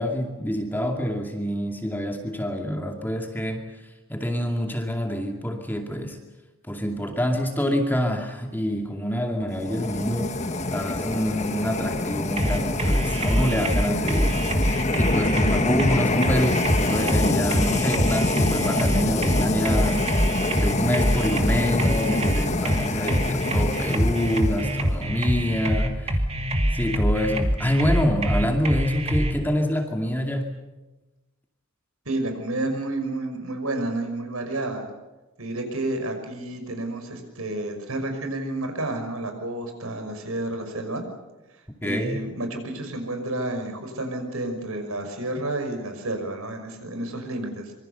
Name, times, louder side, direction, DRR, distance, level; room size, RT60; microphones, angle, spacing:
voice 1, 0.0-3.6 4.1-6.2 6.7-10.3 10.7-14.4 15.0-20.3 20.6-26.2 26.7-30.5 41.8-42.2, equal, 10° left, 3 dB, 2.4 m, -26 dB
sound 1, 9.5-24.9, left 2 dB, 30° left, 1.6 m, -26 dB
sound 2, 12.4-29.3, equal, 25° right, 2.5 m, -24 dB
voice 2, 32.1-34.9 35.4-41.0 41.8-47.7, right 2 dB, 75° right, 5 dB, 5.8 m, -30 dB
25.5 x 25.0 x 6.8 m, 1.1 s
head